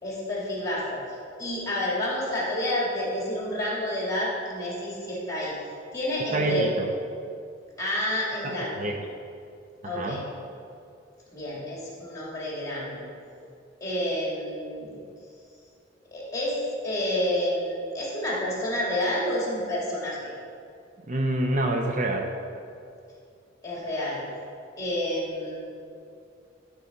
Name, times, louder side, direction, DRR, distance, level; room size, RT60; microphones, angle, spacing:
voice 1, 0.0-1.0 1.4-5.6 5.9-6.7 7.8-8.7 9.8-10.2 11.3-13.1 13.8-15.0 16.1-16.6 16.8-20.3 23.6-24.2 24.8-25.5, left 1 dB, 20° left, -5 dB, 2.6 m, -29 dB
voice 2, 6.3-6.9 8.4-9.1 9.8-10.2 21.1-22.3, right 2 dB, 40° right, 2 dB, 0.7 m, -27 dB
13.0 x 4.8 x 5.3 m, 2.5 s
head